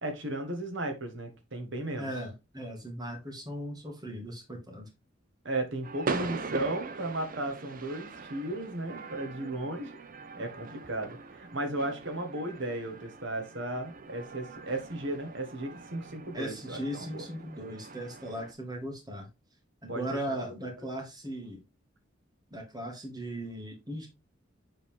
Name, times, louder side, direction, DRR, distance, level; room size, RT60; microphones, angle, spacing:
voice 1, 0.0-2.1 5.4-10.0 10.4-17.3 19.9-20.4, right 1 dB, 65° right, 1.8 m, -35 dB
voice 2, 2.0-4.9 16.3-19.3 19.8-21.6 22.5-24.1, right 1 dB, 20° right, 2.1 m, -38 dB
sound 1, 5.8-18.5, right 4 dB, 45° right, 0.7 m, -41 dB
7.3 x 4.1 x 3.6 m
head